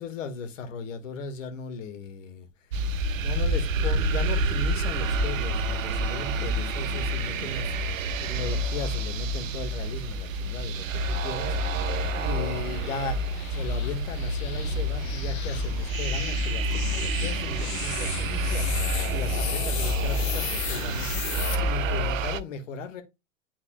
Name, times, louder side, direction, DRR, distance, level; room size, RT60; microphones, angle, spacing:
voice 1, 0.0-2.5 3.2-13.2 13.5-23.0, left 4 dB, 70° left, 1.7 m, -37 dB
sound 1, 2.7-22.4, right 1 dB, 75° right, 0.7 m, -28 dB
sound 2, 10.0-21.5, left 12 dB, 55° left, 1.0 m, -38 dB
10.5 x 4.1 x 2.3 m
hypercardioid pair, 105°, 40 cm